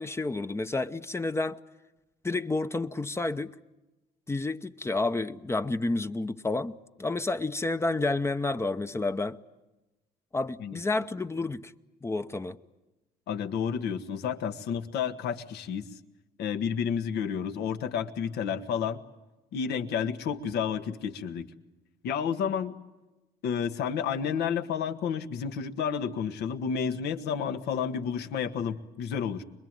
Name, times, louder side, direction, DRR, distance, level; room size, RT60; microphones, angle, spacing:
voice 1, 0.0-1.6 2.2-3.6 4.3-9.4 10.3-11.7 12.0-12.6, left 2 dB, 15° left, 0.8 m, -30 dB
voice 2, 13.3-15.9 16.4-19.0 19.5-21.5 22.0-22.8 23.4-29.4, left 7 dB, 75° left, 1.6 m, -31 dB
25.5 x 22.0 x 9.0 m
cardioid pair, 110°, 17 cm